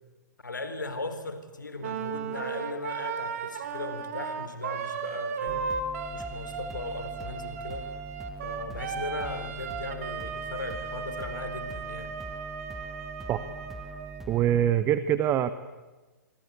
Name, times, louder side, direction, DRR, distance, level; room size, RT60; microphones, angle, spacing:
voice 1, 0.4-5.7 6.1-7.9 8.4-12.1, left 3 dB, 80° left, 10 dB, 4.0 m, -38 dB
Wind instrument woodwind instrument, 1.8-14.3, right 6 dB, 50° right, 3.4 m, -36 dB
sound 1, 5.5-14.7, right 2 dB, ahead, 1.2 m, -43 dB
voice 2, 14.3-15.5, right 10 dB, 20° right, 13 dB, 1.0 m, -24 dB
26.0 x 24.5 x 8.3 m, 1.2 s
figure-of-eight pair, 120°, 10 cm